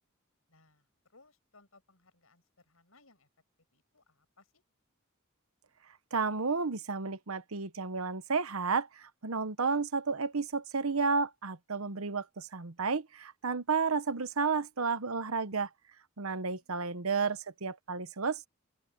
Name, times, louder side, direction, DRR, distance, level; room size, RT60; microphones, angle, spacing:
voice 1, 0.5-3.3 3.7-4.6 18.0-18.1, left 3 dB, 80° left, 6.9 m, -65 dB
voice 2, 6.1-15.7 16.2-18.5, right 4 dB, 85° right, 1.1 m, -32 dB
open air
head